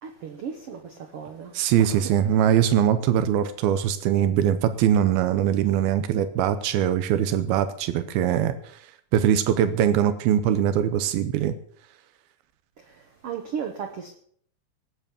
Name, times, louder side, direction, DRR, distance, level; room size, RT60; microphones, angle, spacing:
voice 1, 0.0-1.5 1.8-2.0 12.9-14.1, right 7 dB, 65° right, 1.5 m, -35 dB
voice 2, 1.5-8.5 9.1-11.5, right 10 dB, 90° right, 2.7 m, -22 dB
18.0 x 8.3 x 7.0 m
omnidirectional pair, 4.2 m